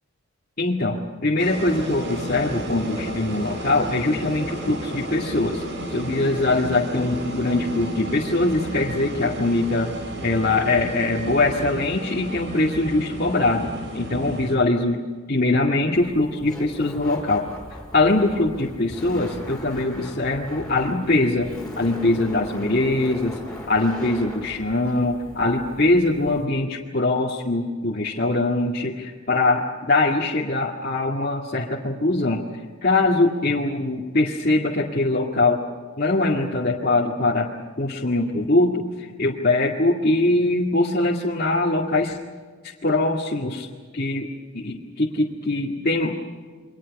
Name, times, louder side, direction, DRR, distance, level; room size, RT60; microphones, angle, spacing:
voice 1, 0.6-5.6 5.9-9.9 10.2-15.0 15.3-17.5 17.9-23.4 23.7-32.4 32.8-35.6 36.0-37.5 37.8-42.2 42.6-43.7 43.9-46.2, left 2 dB, 45° left, -5 dB, 2.2 m, -22 dB
sound 1, 1.4-14.6, equal, 55° right, 6.2 m, -32 dB
Laughter, 15.9-26.5, equal, 5° left, 5.4 m, -39 dB
29.5 x 24.0 x 5.4 m, 1.5 s
head